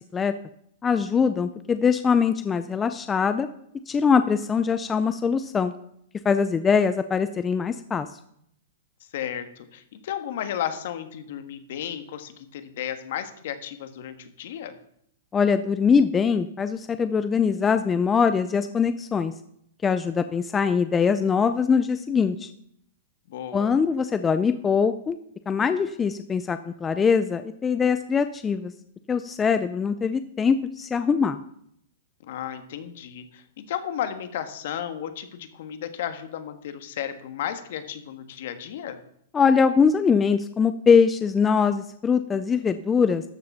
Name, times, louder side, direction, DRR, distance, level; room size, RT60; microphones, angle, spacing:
voice 1, 0.8-3.5 3.9-5.7 6.2-8.1 15.3-19.3 19.8-22.5 23.5-25.2 25.5-28.7 29.1-31.4 39.3-43.2, left 6 dB, 15° left, 11 dB, 0.4 m, -22 dB
voice 2, 9.1-14.8 23.3-23.7 32.2-39.0, left 10 dB, 55° left, 9 dB, 1.5 m, -34 dB
13.0 x 7.0 x 5.6 m, 0.70 s
hypercardioid pair, 160°, 0 cm